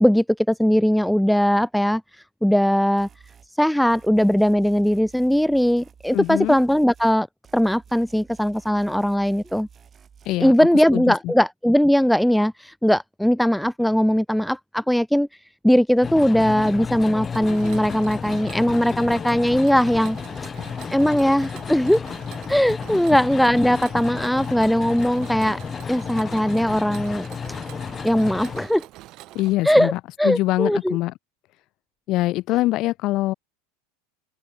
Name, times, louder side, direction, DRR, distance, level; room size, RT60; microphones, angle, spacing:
voice 1, 0.0-2.0 2.4-3.1 3.6-7.3 7.5-9.7 10.4-15.3 15.6-20.5 20.9-22.0 22.5-25.6 25.9-27.3 28.0-28.8 29.6-29.9 30.2-31.0, equal, ahead, 0.4 m, -19 dB
sound 1, 3.0-3.5 3.9-7.2 7.4-10.4, right 7 dB, 20° right, 6.5 m, -51 dB
voice 2, 6.1-6.6 10.3-10.5 10.9-11.3 22.9-23.0 29.3-31.1 32.1-33.3, left 17 dB, 45° left, 2.4 m, -24 dB
sound 2, 16.0-28.6, left 6 dB, 20° left, 1.5 m, -32 dB
Mechanisms, 17.3-29.5, right 17 dB, 45° right, 5.8 m, -44 dB
open air
supercardioid pair, 145°, 0 cm